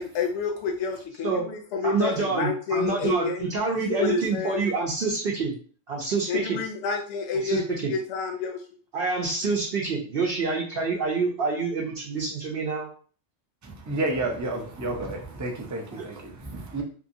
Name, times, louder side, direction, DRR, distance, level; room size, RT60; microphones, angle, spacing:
voice 1, 0.0-3.4 3.9-4.6 6.3-8.6, left 4 dB, 75° left, 0.9 m, -29 dB
voice 2, 1.8-5.6 5.9-6.6 7.3-7.9 8.9-12.9 15.9-16.1, right 4 dB, 60° right, 0.8 m, -27 dB
voice 3, 13.6-16.8, right 2 dB, 30° right, 0.3 m, -31 dB
2.9 x 2.7 x 2.6 m
omnidirectional pair, 1.3 m